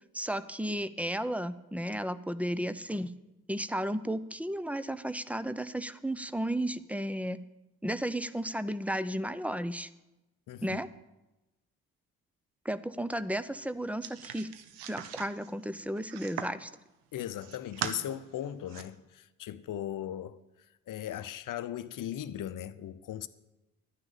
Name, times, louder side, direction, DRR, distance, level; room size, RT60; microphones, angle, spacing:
voice 1, 0.1-3.1 3.5-7.4 7.8-9.9 10.6-10.9 12.6-14.5 14.9-16.7, right 1 dB, 5° right, 0.6 m, -33 dB
voice 2, 10.5-10.8 17.1-20.4 20.9-23.3, left 11 dB, 45° left, 0.8 m, -38 dB
sound 1, 14.0-16.6 17.1-18.0 18.4-18.8, right 9 dB, 70° right, 1.0 m, -40 dB
11.5 x 9.6 x 6.8 m
figure-of-eight pair, 45°, 43 cm